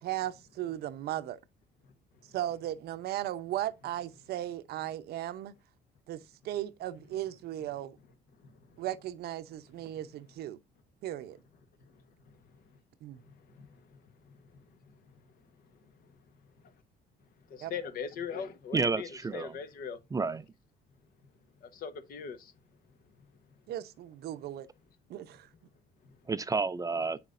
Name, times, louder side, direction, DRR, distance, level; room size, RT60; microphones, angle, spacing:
voice 1, 0.0-1.4 2.3-5.5 6.1-8.0 8.8-10.6 11.0-11.4 13.0-13.2 17.6-17.7 23.7-24.7 25.1-25.5, right 13 dB, 70° right, 0.7 m, -36 dB
voice 2, 8.4-8.8 11.9-12.6 13.2-15.1 16.0-16.1 17.5-20.0 21.6-22.5 26.0-26.2, left 6 dB, 60° left, 1.0 m, -42 dB
voice 3, 18.7-19.5 20.1-20.4 26.3-27.2, right 4 dB, 20° right, 0.4 m, -30 dB
7.9 x 5.9 x 2.5 m
cardioid pair, 110°, 17 cm